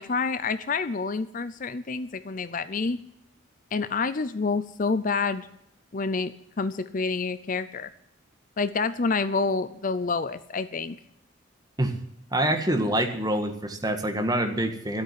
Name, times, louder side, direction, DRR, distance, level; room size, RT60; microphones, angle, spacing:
voice 1, 0.0-3.0 3.7-5.5 5.9-7.9 8.6-11.0, left 4 dB, 40° left, 14 dB, 0.5 m, -28 dB
voice 2, 12.3-15.0, right 1 dB, 20° right, 5 dB, 1.6 m, -26 dB
13.0 x 8.6 x 9.4 m, 0.76 s
head